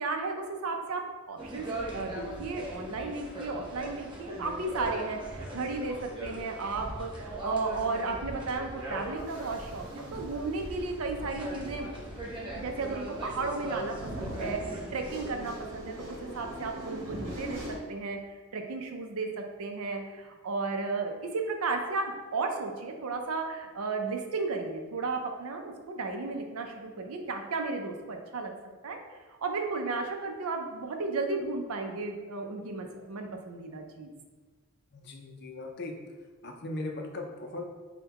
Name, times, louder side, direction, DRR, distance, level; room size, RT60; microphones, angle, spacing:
voice 1, 0.0-11.9 12.5-28.5 28.8-29.0 29.4-34.1, right 3 dB, 80° right, 4 dB, 0.5 m, -34 dB
sound 1, 1.4-15.3, right 1 dB, 20° right, 0.6 m, -40 dB
sound 2, 8.5-17.8, equal, 55° right, 1.1 m, -42 dB
voice 2, 34.9-36.0 36.4-37.6, left 2 dB, 50° left, 2 dB, 0.5 m, -38 dB
5.6 x 2.2 x 2.9 m, 1.4 s
head